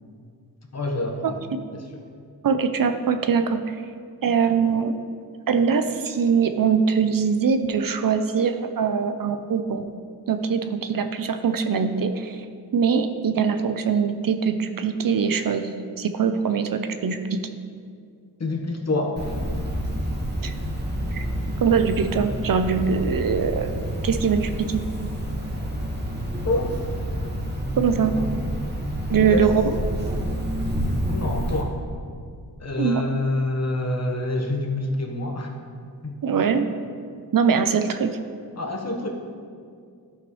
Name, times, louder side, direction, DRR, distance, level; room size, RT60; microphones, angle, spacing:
voice 1, 0.7-1.4 1.7-2.0 18.4-19.6 26.4-26.7 29.2-29.5 31.1-31.8 32.6-35.5 36.0-36.2 38.6-39.1, left 2 dB, 40° left, 1 dB, 1.3 m, -27 dB
voice 2, 2.4-3.8 4.2-4.9 5.5-9.9 10.3-12.4 12.7-17.5 20.4-20.5 21.1-21.3 21.6-23.7 24.0-24.8 27.8-28.1 29.1-29.5 32.8-33.0 36.2-36.6 37.3-38.2, right 6 dB, 55° right, 8 dB, 0.6 m, -22 dB
Cricket, 19.2-31.6, equal, 25° right, 1.4 m, -28 dB
12.5 x 5.7 x 3.2 m, 2.2 s
cardioid pair, 70°, 39 cm